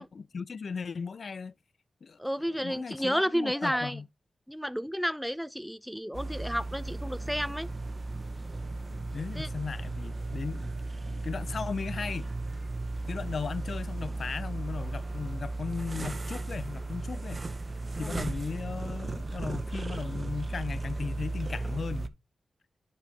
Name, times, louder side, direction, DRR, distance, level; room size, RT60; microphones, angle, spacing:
voice 1, 0.0-1.5 2.0-2.2 2.5-4.1 8.9-10.7 11.1-12.3 13.1-17.4 18.0-22.1, left 5 dB, 65° left, 0.3 m, -37 dB
voice 2, 2.2-4.0 4.5-7.7 9.3-9.5 18.0-18.2, equal, ahead, 0.6 m, -31 dB
sound 1, 6.1-22.1, right 2 dB, 40° right, 1.0 m, -35 dB
10.5 x 5.3 x 2.9 m
cardioid pair, 55°, 0 cm